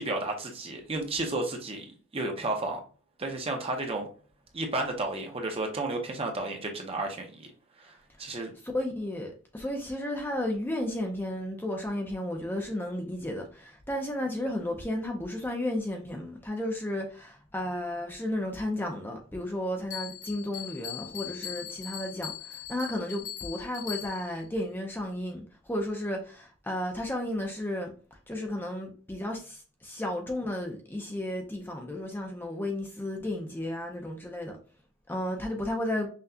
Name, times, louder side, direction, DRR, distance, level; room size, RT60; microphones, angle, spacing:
voice 1, 0.0-2.8 3.2-4.1 4.5-7.5 7.8-8.5, right 2 dB, 30° right, 0.7 m, -32 dB
voice 2, 8.7-25.4 25.7-27.9 28.3-34.6 35.1-36.1, left 1 dB, 10° left, 0.6 m, -33 dB
Bell, 19.9-24.4, left 11 dB, 85° left, 1.8 m, -40 dB
5.7 x 2.3 x 2.7 m
head